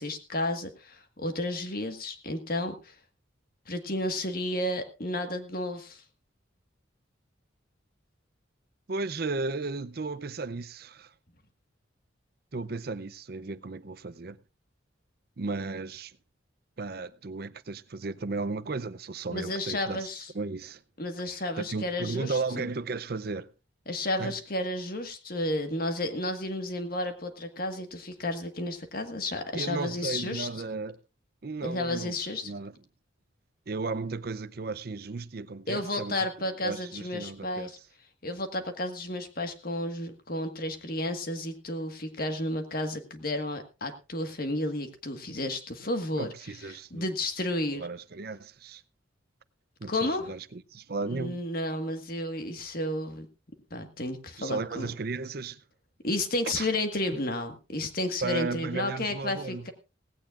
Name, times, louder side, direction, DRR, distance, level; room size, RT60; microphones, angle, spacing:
voice 1, 0.0-2.9 3.7-6.0 19.3-20.3 21.0-22.7 23.9-30.5 31.6-32.5 35.7-37.7 38.2-46.3 46.7-47.9 49.9-50.3 51.1-53.3 53.7-54.9 56.0-59.7, left 1 dB, 45° left, 1.6 m, -32 dB
voice 2, 8.9-11.1 12.5-14.4 15.4-16.2 16.8-20.1 20.3-20.8 21.3-23.5 24.2-24.3 29.5-31.0 31.4-32.1 32.4-32.7 33.7-37.7 46.1-47.1 47.8-48.8 49.8-51.4 54.4-55.6 56.5-56.7 57.1-57.2 58.2-59.6, right 3 dB, 50° right, 0.6 m, -35 dB
17.5 x 16.0 x 2.5 m
head